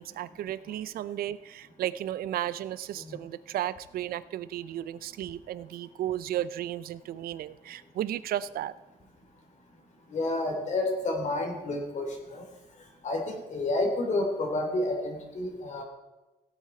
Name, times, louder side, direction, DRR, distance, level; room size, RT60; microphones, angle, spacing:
voice 1, 0.0-8.7, right 12 dB, 60° right, 17 dB, 0.6 m, -34 dB
voice 2, 10.1-12.4 13.0-15.8, left 2 dB, 45° left, 2 dB, 3.1 m, -30 dB
16.5 x 8.5 x 4.4 m, 1.1 s
cardioid pair, 110°, 17 cm